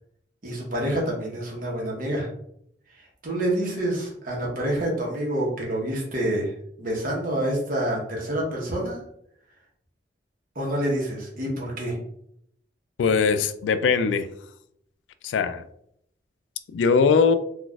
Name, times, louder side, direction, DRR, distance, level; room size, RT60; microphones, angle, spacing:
voice 1, 0.4-2.3 3.2-6.5 6.8-9.0 10.5-12.0, right 1 dB, 50° right, -2 dB, 1.0 m, -27 dB
voice 2, 13.0-14.3 15.2-15.6 16.7-17.3, left 5 dB, 85° left, 11 dB, 0.3 m, -20 dB
3.9 x 2.4 x 2.3 m, 0.71 s
head